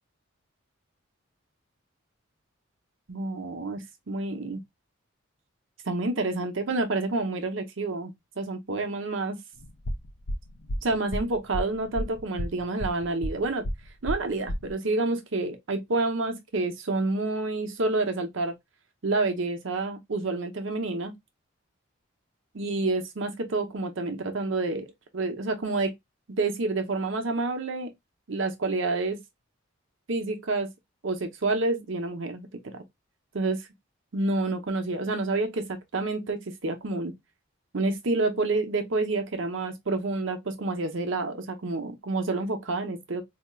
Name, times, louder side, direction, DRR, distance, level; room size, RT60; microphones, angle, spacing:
voice 1, 3.1-4.6 5.9-9.4 10.8-13.7 14.0-18.5 19.0-21.1 22.5-24.9 25.1-25.9 26.3-27.9 28.3-29.2 30.1-30.7 31.0-32.8 33.3-33.7 34.1-37.1 37.7-43.2, right 2 dB, 65° right, 0.7 m, -28 dB
sound 1, 9.6-14.7, equal, 70° left, 0.6 m, -32 dB
4.3 x 2.8 x 2.2 m
head